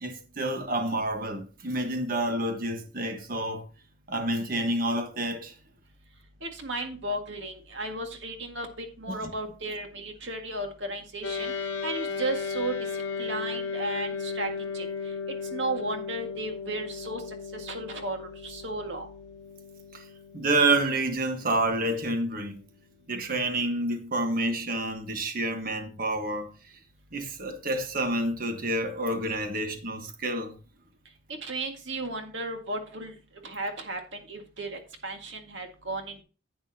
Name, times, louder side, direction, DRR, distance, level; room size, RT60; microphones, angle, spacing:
voice 1, 0.0-3.6 4.1-5.5 9.2-9.3 19.9-20.0 20.3-22.6 23.1-26.5 27.1-30.5, right 2 dB, 50° right, 1.4 m, -28 dB
voice 2, 6.4-11.5 11.8-14.9 15.5-17.2 17.5-19.1 31.3-33.1 33.4-36.2, right 2 dB, 70° right, 1.9 m, -34 dB
sound 1, 11.2-22.8, left 5 dB, 60° left, 1.3 m, -36 dB
10.5 x 8.6 x 2.8 m
head